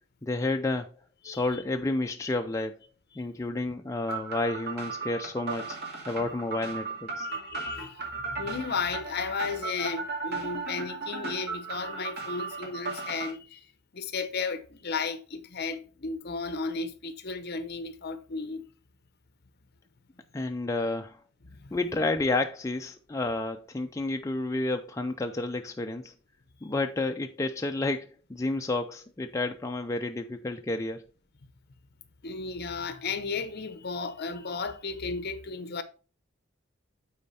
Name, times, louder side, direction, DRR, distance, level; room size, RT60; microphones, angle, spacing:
voice 1, 0.2-0.9 1.2-2.8 3.2-5.8 6.1-7.3 20.3-21.2 21.7-26.1 26.6-31.0, left 2 dB, 15° left, 0.4 m, -30 dB
voice 2, 1.3-1.6 3.1-3.2 7.2-13.7 13.9-18.6 21.4-21.8 32.2-35.8, left 4 dB, 50° left, 0.8 m, -34 dB
sound 1, 4.1-13.3, right 3 dB, 50° right, 2.2 m, -36 dB
8.7 x 4.2 x 4.1 m
head